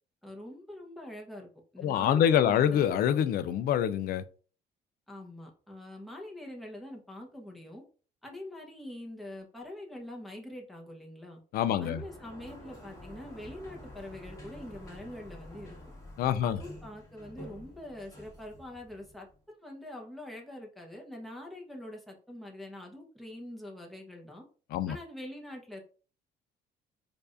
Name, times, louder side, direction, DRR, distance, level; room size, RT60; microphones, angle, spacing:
voice 1, 0.2-2.9 5.1-7.8 8.2-11.4 11.8-15.8 16.4-24.4 24.9-25.8, left 1 dB, ahead, 1.0 m, -44 dB
voice 2, 1.8-4.2 11.5-12.0 16.2-16.6 24.7-25.0, left 9 dB, 60° left, 0.4 m, -26 dB
Sliding door, 11.6-19.4, left 1 dB, 20° left, 1.7 m, -49 dB
4.6 x 2.5 x 2.5 m
cardioid pair, 110°, 17 cm